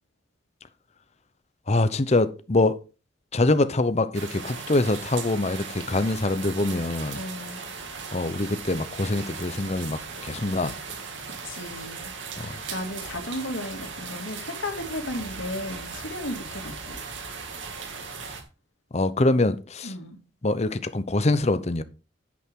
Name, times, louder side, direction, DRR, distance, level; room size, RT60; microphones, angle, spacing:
voice 1, 1.7-2.8 3.3-7.2 8.1-10.8 12.4-12.6 18.9-19.9 20.4-21.8, left 2 dB, 35° left, 0.7 m, -24 dB
sound 1, 4.1-18.4, right 5 dB, 80° right, 2.3 m, -38 dB
voice 2, 7.1-7.6 11.4-12.1 12.4-17.0 19.8-20.2, left 1 dB, 90° left, 2.5 m, -35 dB
10.5 x 8.6 x 3.7 m
head